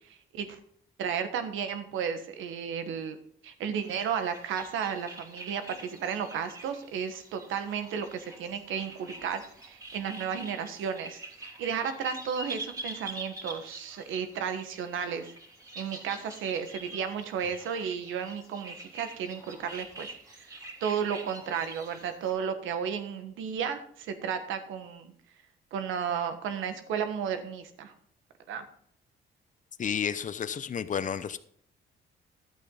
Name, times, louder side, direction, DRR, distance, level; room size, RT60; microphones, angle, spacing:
voice 1, 0.1-0.6 1.0-3.2 3.4-15.3 15.7-20.5 20.8-25.1 25.7-27.9 28.5-28.6, right 7 dB, 85° right, 9 dB, 1.4 m, -33 dB
sound 1, 3.8-22.3, right 2 dB, 15° right, 3.0 m, -45 dB
voice 2, 29.8-31.4, left 7 dB, 40° left, 12 dB, 0.7 m, -31 dB
11.5 x 8.5 x 3.9 m, 0.63 s
cardioid pair, 90°, 20 cm